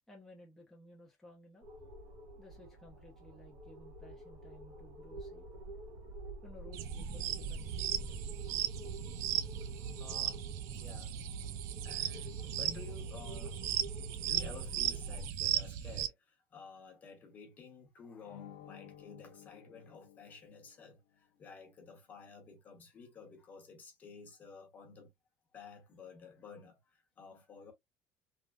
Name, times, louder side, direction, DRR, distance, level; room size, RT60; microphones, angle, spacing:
voice 1, 0.1-1.7 2.4-5.5 6.4-8.0 11.5-11.6, left 1 dB, 5° left, 0.7 m, -57 dB
sound 1, 1.6-15.3, right 1 dB, 85° right, 1.7 m, -49 dB
sound 2, 6.7-16.1, right 11 dB, 65° right, 0.4 m, -37 dB
voice 2, 9.6-10.4 10.8-11.2 11.8-13.6 13.9-25.1 25.5-27.7, left 5 dB, 30° left, 1.0 m, -53 dB
sound 3, 18.2-20.9, left 10 dB, 85° left, 0.6 m, -54 dB
3.4 x 2.2 x 2.4 m
cardioid pair, 155°, 6 cm